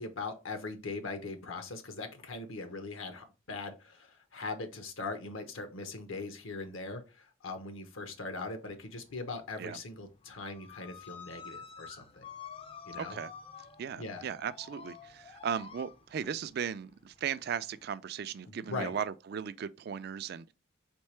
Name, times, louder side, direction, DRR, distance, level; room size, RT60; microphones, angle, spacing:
voice 1, 0.0-12.2 12.8-13.2 14.0-14.2 18.5-18.9, left 3 dB, 75° left, 0.8 m, -40 dB
sound 1, 8.0-9.0 9.3-17.9, left 6 dB, 25° left, 0.4 m, -50 dB
voice 2, 12.9-13.3 13.8-20.5, right 7 dB, 50° right, 0.3 m, -37 dB
4.4 x 3.6 x 3.2 m
head